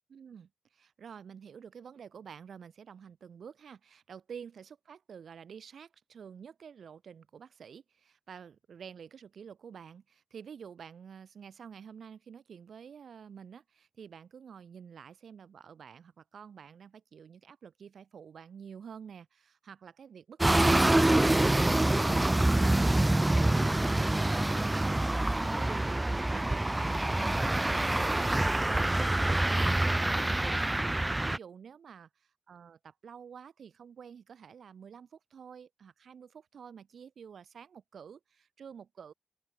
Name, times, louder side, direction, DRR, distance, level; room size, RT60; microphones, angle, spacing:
voice 1, 0.1-30.9 31.2-39.1, right 7 dB, 85° right, 5.4 m, -49 dB
sound 1, 20.4-31.4, right 1 dB, 15° right, 0.3 m, -26 dB
open air
wide cardioid pair, 155°, 0 cm